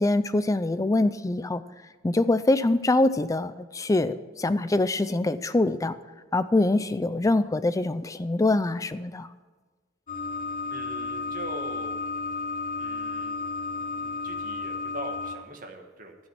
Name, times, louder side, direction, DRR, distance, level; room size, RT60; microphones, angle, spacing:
voice 1, 0.0-1.6 2.0-6.0 6.3-9.3, left 2 dB, 15° left, 13 dB, 0.4 m, -24 dB
sound 1, 10.1-15.3, left 3 dB, 45° left, 1.5 m, -32 dB
voice 2, 10.7-12.0 12.8-13.4 13.7-16.2, right 1 dB, 45° right, 3 dB, 1.4 m, -42 dB
12.0 x 8.8 x 6.0 m, 1.3 s
head